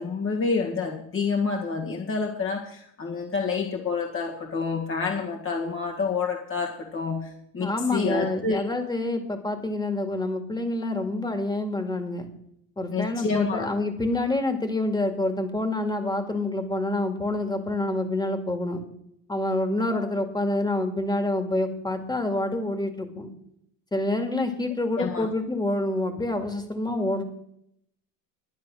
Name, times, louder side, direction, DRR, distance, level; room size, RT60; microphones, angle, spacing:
voice 1, 0.0-8.6 12.9-13.7 25.0-25.3, left 4 dB, 30° left, 1 dB, 1.6 m, -28 dB
voice 2, 7.6-12.3 12.8-18.8 19.3-23.3 23.9-27.2, left 2 dB, 10° left, 7 dB, 2.0 m, -27 dB
11.5 x 9.7 x 6.2 m, 0.74 s
cardioid pair, 110°, 39 cm